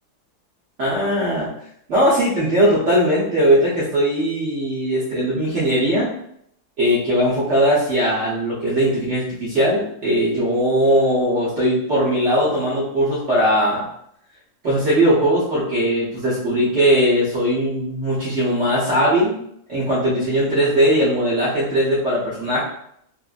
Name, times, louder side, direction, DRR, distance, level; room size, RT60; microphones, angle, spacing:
voice 1, 0.8-1.5 1.9-6.1 6.8-13.8 14.6-19.4 19.7-22.6, equal, 55° right, -9 dB, 1.1 m, -19 dB
3.7 x 2.1 x 2.4 m, 0.71 s
omnidirectional pair, 1.7 m